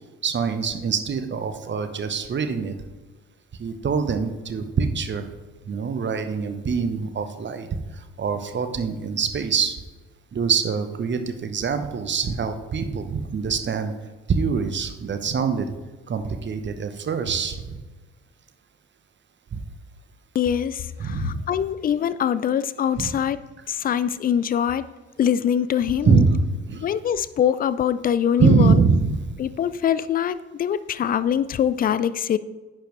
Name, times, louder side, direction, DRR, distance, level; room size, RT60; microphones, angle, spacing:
voice 1, 0.2-2.8 3.6-5.3 5.7-7.7 7.9-9.8 10.3-13.9 14.3-15.7 16.1-17.8 19.5-19.6 21.0-21.4 23.0-23.1 26.0-26.4 26.7-26.9 28.4-29.3, right 5 dB, 35° right, 8 dB, 1.0 m, -24 dB
voice 2, 20.3-23.4 23.7-24.8 25.2-26.2 26.8-28.8 29.4-32.4, left 9 dB, 25° left, 16 dB, 0.4 m, -23 dB
10.0 x 7.4 x 3.2 m, 1.3 s
figure-of-eight pair, 45°, 33 cm